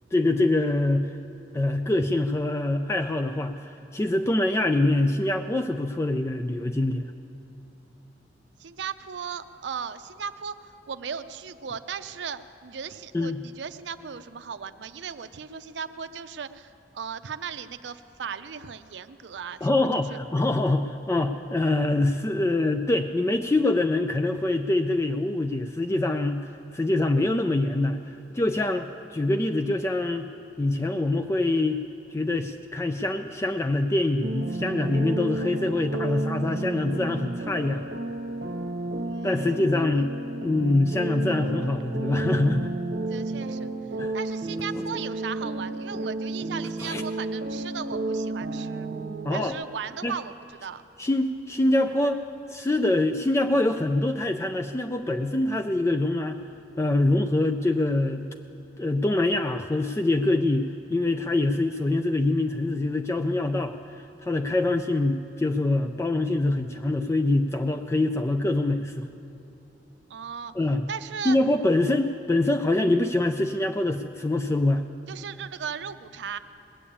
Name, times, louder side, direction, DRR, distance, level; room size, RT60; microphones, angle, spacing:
voice 1, 0.1-1.1 1.5-7.1 13.1-13.4 19.6-30.3 30.6-31.8 32.1-37.9 39.2-40.1 40.4-42.8 44.0-44.1 44.7-44.8 46.8-47.0 49.2-49.6 50.0-50.1 51.0-56.4 56.8-58.2 58.8-69.1 70.5-70.8 71.2-74.8, left 2 dB, 15° left, 7 dB, 0.3 m, -25 dB
voice 2, 8.6-19.7 20.1-20.2 39.1-39.3 43.0-43.7 44.1-48.9 49.3-50.3 50.6-50.8 70.1-70.5 70.9-71.4 75.1-76.4, right 7 dB, 80° right, 11 dB, 0.5 m, -37 dB
sound 1, 34.2-49.5, right 2 dB, 60° right, 1.0 m, -32 dB
19.5 x 7.0 x 8.6 m, 2.9 s
head